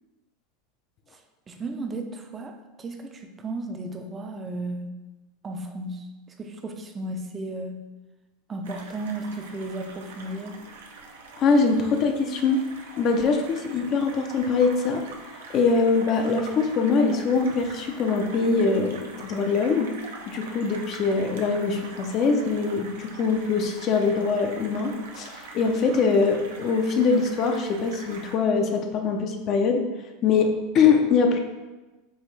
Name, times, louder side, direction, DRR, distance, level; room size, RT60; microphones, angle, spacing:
voice 1, 1.5-4.9 5.4-6.1 6.4-7.8 8.5-10.6, right 2 dB, 25° right, 5 dB, 0.4 m, -34 dB
sound 1, 8.6-28.3, right 3 dB, 85° right, 0.6 m, -43 dB
voice 2, 11.4-12.6 13.0-15.0 15.5-19.9 20.3-29.8 30.2-31.4, left 4 dB, 45° left, 4 dB, 0.5 m, -23 dB
4.6 x 2.5 x 3.2 m, 1.1 s
hypercardioid pair, 110°, 0 cm